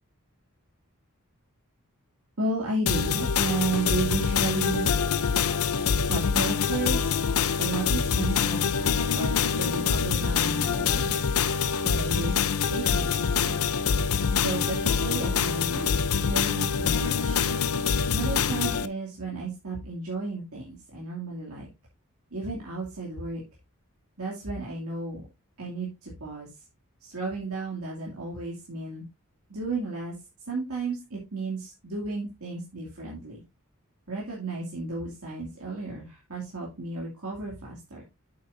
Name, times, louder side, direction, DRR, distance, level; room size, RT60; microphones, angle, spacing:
voice 1, 2.4-4.9 5.9-7.2 7.6-11.1 11.8-12.4 12.7-13.6 14.4-16.0 16.2-17.5 18.1-21.7 22.3-23.4 24.2-25.3 25.6-26.5 27.0-29.0 29.5-30.1 30.5-33.4 34.1-38.0, right 3 dB, 80° right, -3 dB, 2.6 m, -33 dB
sound 1, 2.9-18.9, left 6 dB, 80° left, 0.6 m, -25 dB
8.4 x 7.8 x 2.7 m, 0.24 s
head